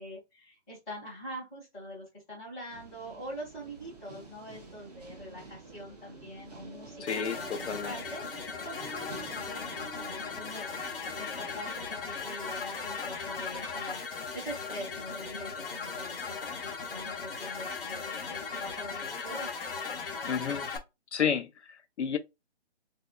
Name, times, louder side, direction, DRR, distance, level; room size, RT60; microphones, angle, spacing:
voice 1, 0.0-10.8 11.1-19.5, equal, 5° left, 1.2 m, -44 dB
sound 1, 2.7-17.6 18.3-18.7, right 3 dB, 35° right, 0.8 m, -50 dB
voice 2, 7.0-7.9 20.3-20.7 21.1-22.2, left 7 dB, 75° left, 0.6 m, -31 dB
sound 2, 7.1-20.8, left 5 dB, 50° left, 0.8 m, -38 dB
4.2 x 2.7 x 2.2 m
hypercardioid pair, 180°, 35 cm